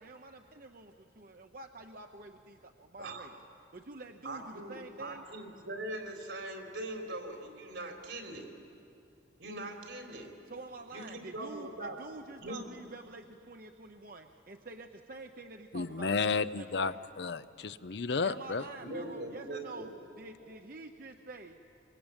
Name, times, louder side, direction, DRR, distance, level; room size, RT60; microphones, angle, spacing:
voice 1, 0.0-3.4 3.7-5.2 10.5-17.0 18.2-19.9 20.2-21.6, right 2 dB, 50° right, 5 dB, 0.8 m, -48 dB
voice 2, 4.2-8.5 9.4-10.3 10.9-12.0 12.4-12.7 18.8-19.9, right 1 dB, 80° right, 3 dB, 3.8 m, -41 dB
voice 3, 15.7-18.6, left 4 dB, 60° left, 14 dB, 0.6 m, -32 dB
25.5 x 24.0 x 8.9 m, 2.5 s
head